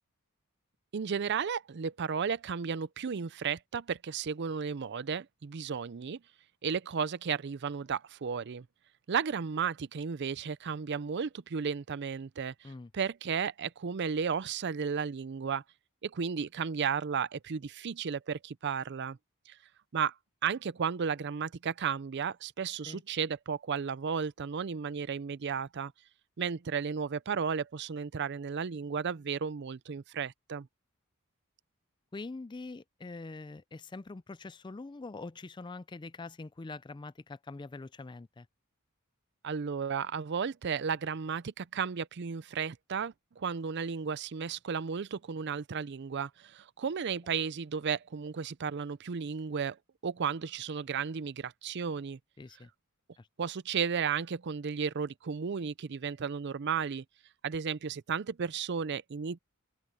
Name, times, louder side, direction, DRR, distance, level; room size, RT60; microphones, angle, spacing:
voice 1, 0.9-6.2 6.6-8.7 9.1-15.6 16.0-19.2 19.5-19.6 19.9-20.1 20.4-25.9 26.4-30.7 39.4-49.8 50.0-52.2 53.4-57.0 57.4-59.4, right 6 dB, 50° right, 0.5 m, -34 dB
voice 2, 32.1-38.5 52.4-52.7 53.2-53.3, left 3 dB, 20° left, 0.4 m, -44 dB
open air
head